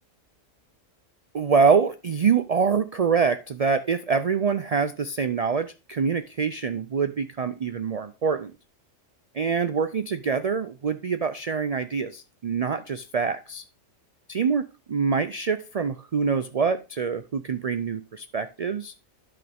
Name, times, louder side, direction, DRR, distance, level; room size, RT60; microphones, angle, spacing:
voice 1, 1.3-8.5 9.3-13.6 14.3-18.9, right 5 dB, 85° right, 11 dB, 0.3 m, -25 dB
10.5 x 6.1 x 3.5 m, 0.30 s
omnidirectional pair, 1.3 m